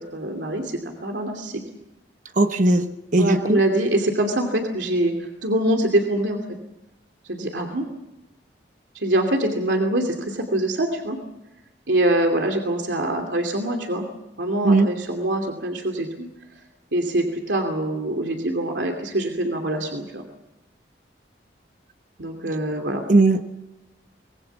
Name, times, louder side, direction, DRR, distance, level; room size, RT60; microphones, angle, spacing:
voice 1, 0.1-1.6 3.2-6.6 7.3-7.9 8.9-11.2 11.9-14.1 14.4-16.3 16.9-20.2 22.2-23.0, right 1 dB, 85° right, 3 dB, 2.8 m, -24 dB
voice 2, 2.4-2.9 3.1-3.6 14.6-14.9 23.1-23.5, right 2 dB, 45° right, 7 dB, 1.1 m, -17 dB
25.0 x 20.5 x 7.3 m, 0.93 s
head